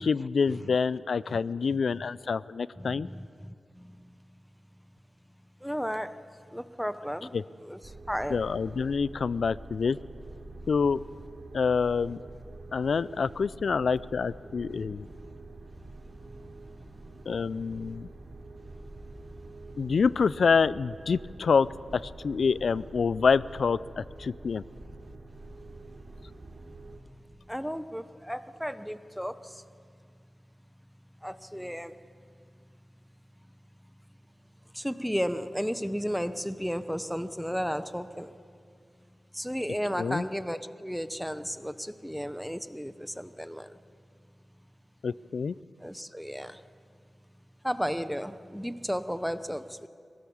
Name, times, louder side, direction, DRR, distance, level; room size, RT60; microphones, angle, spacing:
voice 1, 0.0-3.1 7.3-7.4 8.3-10.0 10.7-11.0 11.5-12.2 12.7-15.1 17.3-18.1 19.8-21.7 21.9-24.6 40.0-40.2 45.0-45.5, left 5 dB, 75° left, 19 dB, 0.4 m, -27 dB
voice 2, 1.7-2.0 2.8-4.0 5.6-6.2 6.5-7.3 7.6-7.8 8.1-8.4 27.5-29.4 31.2-31.9 34.7-38.3 39.3-43.7 45.8-46.6 47.6-49.9, equal, ahead, 12 dB, 0.9 m, -34 dB
sound 1, 7.8-27.0, right 2 dB, 55° right, 3.2 m, -46 dB
24.0 x 17.5 x 7.1 m, 2.3 s
cardioid pair, 55°, 0 cm